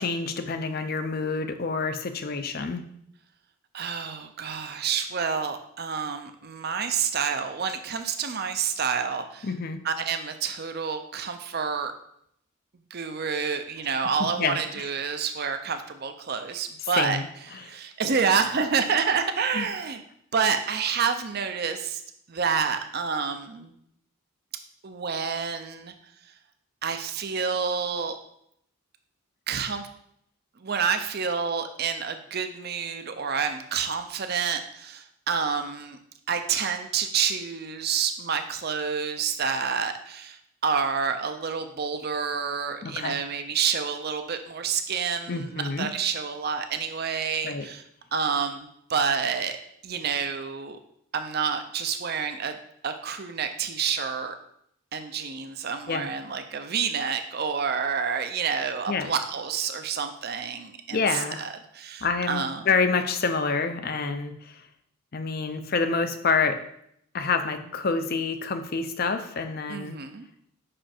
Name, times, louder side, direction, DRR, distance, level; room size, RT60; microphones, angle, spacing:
voice 1, 0.0-2.8 9.4-9.8 14.4-14.8 17.0-17.6 19.5-19.7 42.8-43.1 45.3-45.9 47.4-47.6 55.9-56.1 58.9-59.1 60.9-61.4 62.0-64.6 65.1-66.6 67.1-70.0, left 4 dB, 45° left, 9 dB, 0.5 m, -27 dB
voice 2, 3.7-9.5 9.8-11.9 12.9-17.2 17.5-20.0 20.3-22.0 22.3-23.7 24.8-25.9 26.8-28.2 29.5-29.9 30.6-36.0 36.3-47.8 48.1-49.6 49.8-50.8 51.1-52.6 52.8-54.3 54.9-62.6 69.7-70.3, right 6 dB, 45° right, 8 dB, 0.5 m, -28 dB
5.6 x 5.0 x 4.4 m, 0.72 s
head